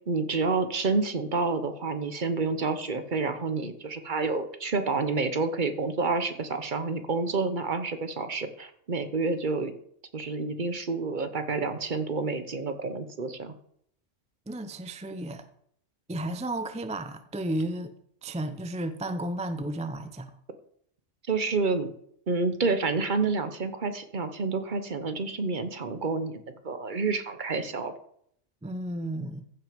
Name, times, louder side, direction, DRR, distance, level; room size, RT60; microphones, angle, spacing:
voice 1, 0.1-9.7 10.1-13.5 21.3-21.9 22.3-26.4 26.6-27.9, right 4 dB, 45° right, 9 dB, 1.0 m, -29 dB
voice 2, 14.5-15.5 16.1-17.9 18.2-20.3 28.6-29.4, right 1 dB, 10° right, 10 dB, 0.3 m, -33 dB
15.0 x 6.2 x 5.1 m, 0.69 s
omnidirectional pair, 1.2 m